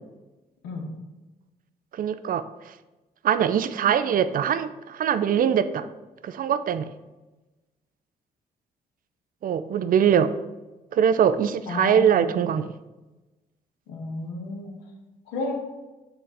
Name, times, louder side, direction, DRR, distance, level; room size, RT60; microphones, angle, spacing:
voice 1, 1.9-2.7 3.2-5.9 6.2-6.9 9.4-10.3 10.9-12.7, right 8 dB, 55° right, 12 dB, 0.5 m, -22 dB
voice 2, 11.7-12.3 13.9-14.7 15.3-15.5, left 3 dB, 90° left, 1 dB, 0.9 m, -32 dB
6.9 x 3.7 x 4.8 m, 1.1 s
supercardioid pair, 55°, 17 cm